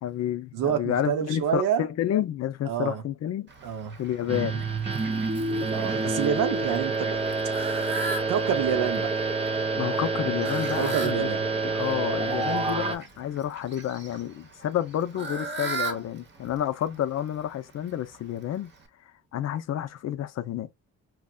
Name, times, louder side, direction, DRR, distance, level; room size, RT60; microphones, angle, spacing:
voice 1, 0.0-3.5 4.0-4.6 9.8-11.3 11.6-18.7 19.3-20.7, left 11 dB, 55° left, 0.5 m, -30 dB
voice 2, 0.5-1.9 2.7-3.0 3.6-4.0 5.7-7.2 7.4-7.8 8.3-9.1 10.8-11.4, right 9 dB, 85° right, 0.8 m, -28 dB
Fowl, 3.5-18.9, right 3 dB, 35° right, 0.8 m, -40 dB
sound 1, 4.3-13.0, right 3 dB, 20° right, 0.5 m, -28 dB
4.6 x 2.1 x 2.2 m
cardioid pair, 100°, 31 cm